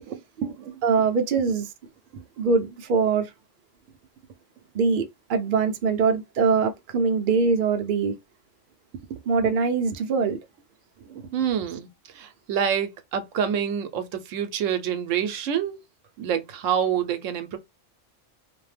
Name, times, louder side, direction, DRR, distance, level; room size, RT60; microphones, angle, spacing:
voice 1, 0.1-0.8 2.1-2.2 9.1-9.5 11.0-15.8 16.2-17.6, right 8 dB, 80° right, 1.0 m, -28 dB
voice 2, 0.8-1.6 2.4-3.3 4.7-5.0 5.3-8.1 9.3-10.4, right 5 dB, 55° right, 0.6 m, -22 dB
2.5 x 2.1 x 3.2 m
omnidirectional pair, 1.3 m